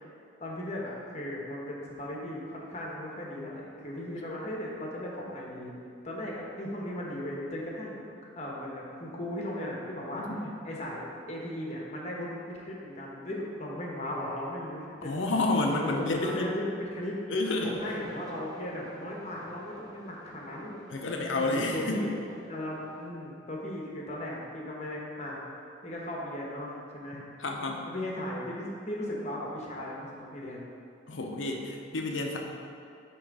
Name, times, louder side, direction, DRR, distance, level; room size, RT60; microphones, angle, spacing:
voice 1, 0.4-5.7 6.0-8.1 8.4-10.2 10.6-15.2 15.8-17.2 17.8-20.8 21.4-22.1 22.5-25.4 25.8-27.2 27.8-30.6, left 1 dB, 35° left, -3 dB, 1.0 m, -37 dB
voice 2, 10.1-10.5 15.0-16.5 17.3-17.8 20.9-22.1 27.1-27.9 31.1-32.4, left 2 dB, 85° left, 2 dB, 0.7 m, -30 dB
sound 1, 17.6-23.1, right 1 dB, 20° right, 0.5 m, -49 dB
8.7 x 3.1 x 4.7 m, 2.5 s
head